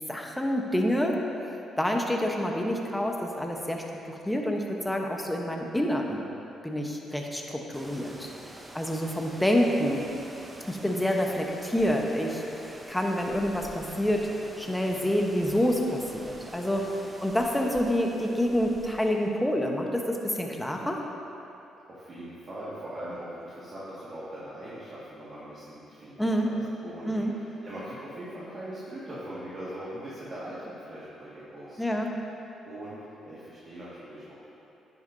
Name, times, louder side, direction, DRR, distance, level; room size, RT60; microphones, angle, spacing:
voice 1, 0.1-1.2 1.8-6.2 6.6-8.3 8.7-10.1 10.7-14.3 14.6-16.8 17.2-21.0 26.2-26.5 27.0-27.3 31.8-32.1, equal, 5° left, 1 dB, 0.9 m, -27 dB
sound 1, 7.7-19.4, right 1 dB, 20° right, 0.7 m, -47 dB
voice 2, 21.9-32.1 32.4-34.5, right 1 dB, 45° right, -10 dB, 1.8 m, -41 dB
10.0 x 8.2 x 2.7 m, 3.0 s
cardioid pair, 90°, 0 cm